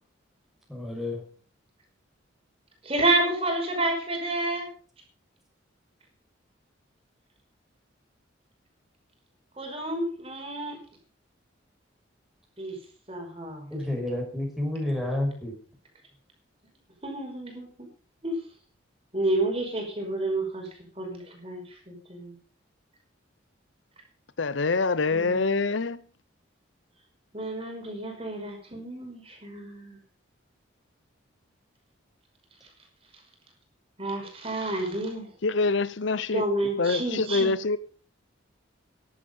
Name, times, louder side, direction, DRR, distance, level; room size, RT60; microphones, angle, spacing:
voice 1, 0.7-1.2 13.7-15.5, left 1 dB, ahead, 5.9 m, -30 dB
voice 2, 2.8-4.7 9.6-10.8 12.6-12.8 13.1-13.7 17.0-17.9 18.2-18.4 19.1-20.7 21.0-22.3 25.1-25.6 27.3-30.0 34.0-35.3 36.3-37.5, right 2 dB, 30° right, 5.7 m, -30 dB
voice 3, 24.4-26.0 35.4-37.8, left 3 dB, 70° left, 0.7 m, -25 dB
15.5 x 11.5 x 5.5 m
head